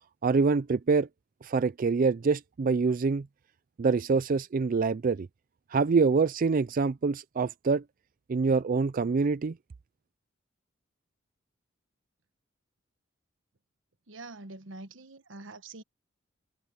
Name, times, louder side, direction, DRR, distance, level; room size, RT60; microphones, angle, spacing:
voice 1, 0.2-1.1 1.4-3.3 3.8-5.3 5.7-7.8 8.3-9.6, right 4 dB, 45° right, 0.4 m, -25 dB
voice 2, 14.1-15.8, right 2 dB, 80° right, 1.2 m, -45 dB
head